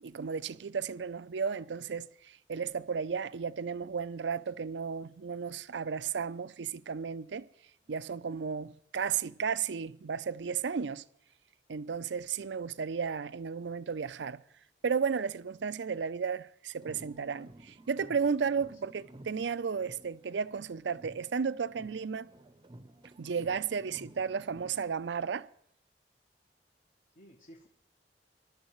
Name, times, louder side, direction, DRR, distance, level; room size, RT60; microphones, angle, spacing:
voice 1, 0.0-2.1 2.5-7.5 7.9-11.0 11.7-14.4 14.8-22.3 23.2-25.5, right 6 dB, 80° right, 0.5 m, -34 dB
sound 1, 16.7-20.6 20.9-24.9, right 1 dB, 25° right, 0.7 m, -54 dB
voice 2, 18.4-18.8 27.2-27.7, equal, 50° left, 1.2 m, -57 dB
21.0 x 12.0 x 3.1 m
head